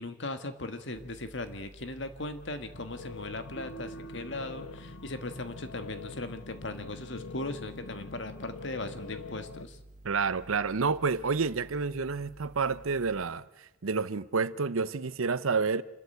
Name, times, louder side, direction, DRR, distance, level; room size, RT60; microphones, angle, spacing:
voice 1, 0.0-9.8, left 2 dB, 60° left, 1.7 m, -38 dB
sound 1, 0.9-13.3, right 1 dB, 35° right, 0.8 m, -53 dB
sound 2, 2.7-9.6, left 4 dB, 85° left, 0.7 m, -45 dB
sound 3, 3.6-5.7, right 5 dB, 25° left, 3.6 m, -48 dB
voice 2, 10.0-13.4 13.8-15.8, right 4 dB, 85° right, 0.8 m, -29 dB
28.0 x 13.0 x 7.9 m
head